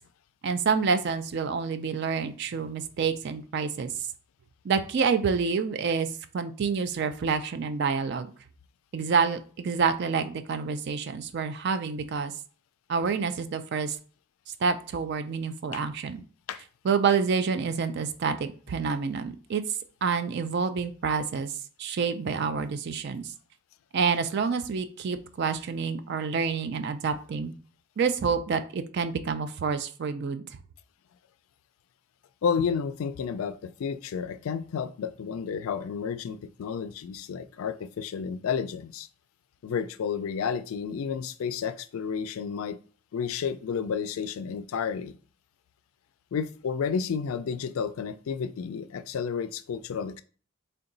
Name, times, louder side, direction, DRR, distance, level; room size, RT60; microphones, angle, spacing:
voice 1, 0.4-3.9 4.6-6.1 6.3-8.3 8.9-12.3 12.9-14.0 14.6-16.2 16.8-19.6 20.0-21.5 21.8-23.3 23.9-27.5 28.0-30.4, right 5 dB, 50° right, 0.3 m, -28 dB
voice 2, 32.4-39.1 39.6-42.8 43.1-45.2 46.3-50.2, left 6 dB, 70° left, 0.3 m, -31 dB
3.8 x 2.2 x 3.8 m
head